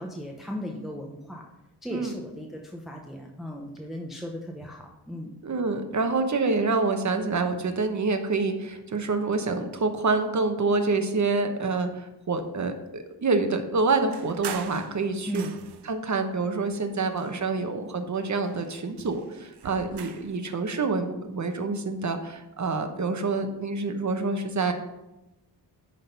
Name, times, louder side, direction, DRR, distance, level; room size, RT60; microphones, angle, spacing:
voice 1, 0.0-1.4 1.8-5.3 15.3-15.5, equal, ahead, 0 dB, 0.8 m, -36 dB
voice 2, 5.4-15.4 15.8-24.7, right 3 dB, 45° right, 7 dB, 1.0 m, -27 dB
sound 1, 14.1-16.0 16.7-17.8 18.1-20.4, right 8 dB, 80° right, 0.7 m, -42 dB
10.0 x 3.9 x 5.2 m, 0.95 s
wide cardioid pair, 110°, 40 cm